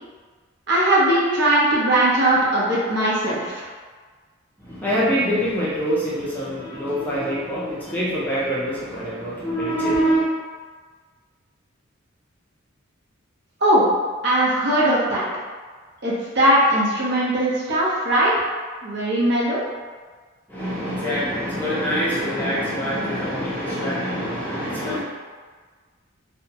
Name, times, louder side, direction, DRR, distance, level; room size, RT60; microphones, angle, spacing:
voice 1, 0.7-3.7 13.6-13.8 14.2-15.3 16.0-18.3 18.8-19.6, right 1 dB, 50° right, -7 dB, 0.7 m, -19 dB
voice 2, 4.6-10.3 20.5-25.0, equal, 10° left, -9 dB, 0.5 m, -24 dB
2.8 x 2.1 x 2.8 m, 1.5 s
head